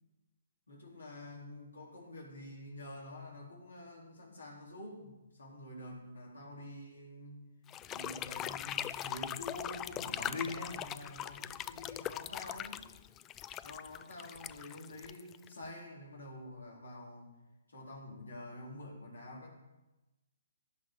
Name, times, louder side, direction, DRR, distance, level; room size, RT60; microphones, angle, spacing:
voice 1, 0.7-7.5 7.9-12.9 13.6-17.3 17.7-19.5, left 2 dB, 80° left, -2 dB, 3.9 m, -47 dB
sound 1, 7.7-15.7, left 11 dB, 20° left, 0.3 m, -41 dB
17.0 x 5.7 x 4.7 m, 1.0 s
figure-of-eight pair, 135°, 0 cm